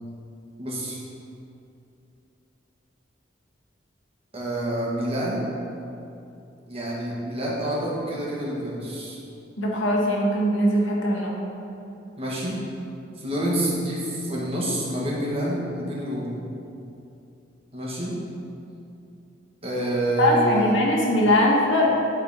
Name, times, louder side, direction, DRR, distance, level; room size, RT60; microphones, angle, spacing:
voice 1, 0.6-1.0 4.3-5.5 6.7-9.2 12.2-12.6 13.2-16.4 17.7-18.2 19.6-20.7, right 1 dB, 30° right, -6 dB, 1.8 m, -27 dB
voice 2, 9.6-11.4 20.2-21.9, left 1 dB, 90° left, -3 dB, 1.5 m, -21 dB
12.0 x 4.3 x 4.2 m, 2.7 s
head